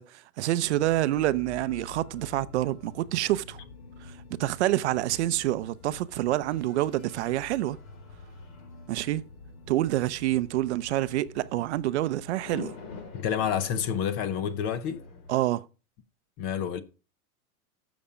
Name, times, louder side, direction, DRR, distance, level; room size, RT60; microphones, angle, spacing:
voice 1, 0.0-3.6 4.0-7.8 8.9-9.2 9.7-12.8 15.3-15.6, right 15 dB, 50° right, 0.6 m, -27 dB
sound 1, 0.6-15.4, left 3 dB, 40° left, 4.4 m, -46 dB
voice 2, 13.1-15.0 16.4-16.8, left 8 dB, 25° left, 0.6 m, -29 dB
12.5 x 7.1 x 5.0 m
supercardioid pair, 165°, 44 cm